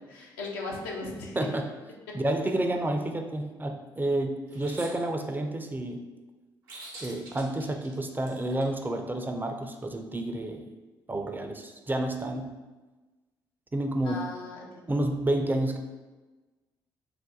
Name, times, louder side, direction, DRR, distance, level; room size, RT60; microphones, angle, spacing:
voice 1, 0.1-1.5 14.0-14.9, left 3 dB, 80° left, -1 dB, 0.5 m, -37 dB
voice 2, 1.4-1.7 2.1-6.0 7.0-10.6 11.1-12.5 13.7-14.3 14.9-15.8, right 1 dB, 15° right, 4 dB, 0.4 m, -30 dB
sound 1, 4.5-4.9 6.7-8.6, right 2 dB, 85° right, 0.6 m, -44 dB
2.4 x 2.1 x 3.9 m, 1.2 s
hypercardioid pair, 45°, 11 cm